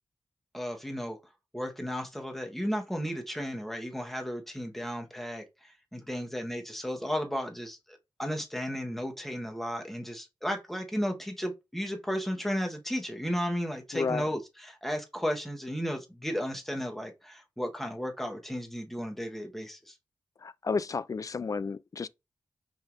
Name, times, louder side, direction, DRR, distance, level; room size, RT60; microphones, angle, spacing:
voice 1, 0.5-1.2 1.5-19.9, equal, 5° left, 1.3 m, -34 dB
voice 2, 13.9-14.3 20.4-22.1, left 4 dB, 45° left, 0.3 m, -32 dB
5.4 x 3.5 x 2.6 m
cardioid pair, 55°, 8 cm